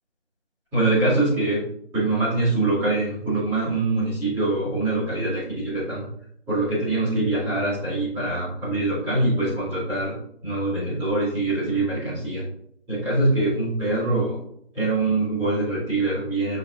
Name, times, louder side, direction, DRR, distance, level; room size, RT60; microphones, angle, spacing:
voice 1, 0.7-1.6 1.9-6.0 6.5-10.1 10.4-12.5 12.9-14.4 14.7-16.6, right 2 dB, 5° right, -14 dB, 2.2 m, -24 dB
8.1 x 5.5 x 2.5 m, 0.70 s
figure-of-eight pair, 165°, 36 cm